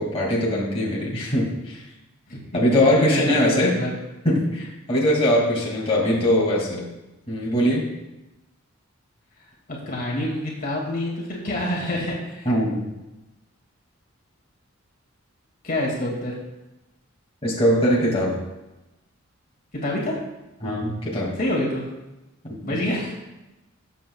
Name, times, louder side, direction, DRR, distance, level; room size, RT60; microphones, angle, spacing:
voice 1, 0.0-1.8 2.5-3.8 4.2-6.9 7.3-7.9 12.5-12.9 17.4-18.4 20.6-21.4 22.4-22.8, equal, 30° left, -5 dB, 2.3 m, -21 dB
voice 2, 2.3-3.9 9.7-12.5 15.6-16.4 19.8-20.1 21.4-21.8 22.6-23.2, left 1 dB, 45° left, -3 dB, 2.3 m, -27 dB
18.5 x 7.6 x 2.3 m, 1.0 s
head